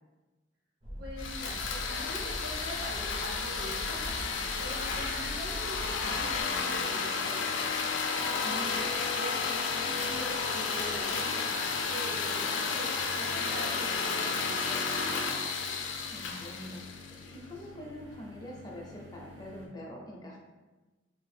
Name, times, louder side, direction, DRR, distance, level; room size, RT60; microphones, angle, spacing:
sound 1, 0.8-6.4, equal, 25° right, 0.6 m, -42 dB
voice 1, 1.0-4.1 4.6-7.6 8.4-15.3, right 1 dB, 60° right, -5 dB, 1.0 m, -43 dB
sound 2, 1.2-17.4, left 5 dB, 85° left, 0.4 m, -32 dB
sound 3, 4.8-19.7, left 2 dB, 85° right, 0.7 m, -51 dB
voice 2, 8.4-8.8 16.1-16.9 17.3-20.4, equal, 20° left, -2 dB, 0.5 m, -44 dB
2.7 x 2.3 x 3.3 m, 1.2 s
head